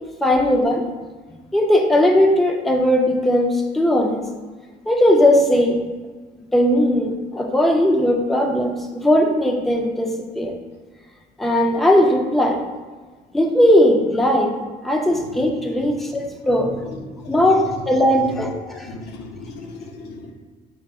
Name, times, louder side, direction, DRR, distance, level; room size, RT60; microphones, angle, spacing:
voice 1, 0.2-0.9 1.5-4.2 4.9-5.8 6.5-10.5 11.4-12.6 13.3-14.6 14.8-16.7 17.3-18.9, left 1 dB, ahead, 2 dB, 0.4 m, -18 dB
voice 2, 16.5-17.4 18.2-18.4 18.7-20.3, left 2 dB, 75° left, 2 dB, 0.7 m, -36 dB
5.4 x 3.5 x 2.3 m, 1.4 s
cardioid pair, 110°, 17 cm